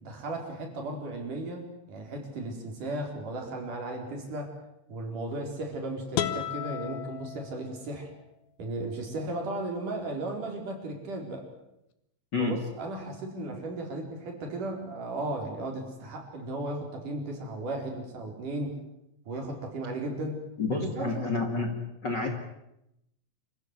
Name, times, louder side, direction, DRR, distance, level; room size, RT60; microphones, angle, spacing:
voice 1, 0.0-4.5 4.9-8.1 8.6-11.5 12.4-18.8 19.3-20.4 20.7-21.3, right 2 dB, 65° right, 2 dB, 5.8 m, -35 dB
sound 1, 6.1-8.1, left 10 dB, 90° left, 3.2 m, -34 dB
voice 2, 20.6-21.7 22.0-22.3, left 3 dB, 35° left, 4 dB, 2.3 m, -29 dB
27.0 x 15.5 x 9.8 m, 0.84 s
omnidirectional pair, 4.0 m